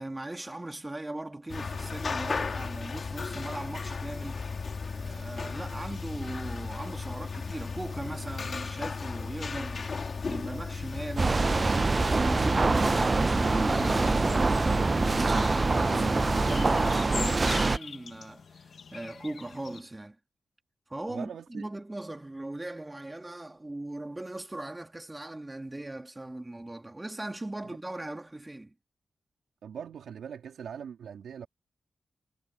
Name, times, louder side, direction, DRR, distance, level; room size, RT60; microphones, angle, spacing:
voice 1, 0.0-4.5 4.9-9.9 10.3-20.2 20.9-28.7, right 2 dB, 20° right, 2.6 m, -39 dB
sound 1, 1.5-16.9, left 4 dB, 55° left, 2.0 m, -36 dB
sound 2, 11.2-17.8, right 3 dB, 35° right, 0.5 m, -25 dB
sound 3, 13.3-19.8, left 6 dB, 70° left, 1.2 m, -44 dB
voice 2, 21.1-21.6 27.6-27.8 29.6-31.5, right 7 dB, 90° right, 3.1 m, -41 dB
cardioid pair, 65°, 0 cm